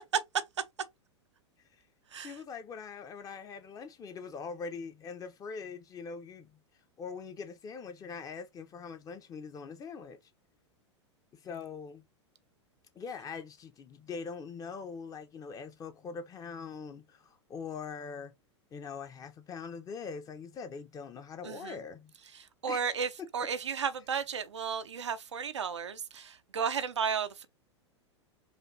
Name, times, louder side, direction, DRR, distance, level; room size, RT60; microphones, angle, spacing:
voice 1, 2.2-6.6 7.0-10.2 11.4-12.0 12.9-18.3 18.7-22.1 22.6-22.8, left 5 dB, 25° left, 0.8 m, -42 dB
voice 2, 21.4-21.8 22.6-27.5, right 6 dB, 75° right, 0.6 m, -34 dB
5.1 x 2.5 x 2.5 m
figure-of-eight pair, 90°, 15 cm